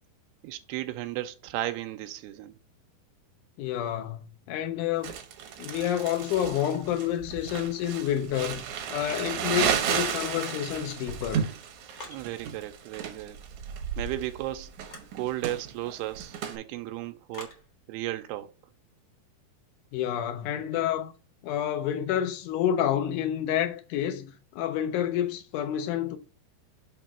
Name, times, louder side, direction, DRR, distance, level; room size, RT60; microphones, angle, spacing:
voice 1, 0.4-2.6 12.1-13.4 14.0-14.8 15.1-17.5 17.9-18.6, right 15 dB, 90° right, 2.6 m, -35 dB
voice 2, 3.6-5.1 5.6-8.6 8.9-11.5 19.9-21.1 21.4-26.2, left 10 dB, 85° left, 1.8 m, -29 dB
Crumpling crinkling, 5.0-16.6, right 8 dB, 70° right, 1.8 m, -33 dB
sound 1, 10.0-10.6 10.9-12.3 14.8-15.1 17.3-17.6, left 1 dB, 60° left, 0.9 m, -44 dB
7.1 x 3.0 x 5.7 m
omnidirectional pair, 4.5 m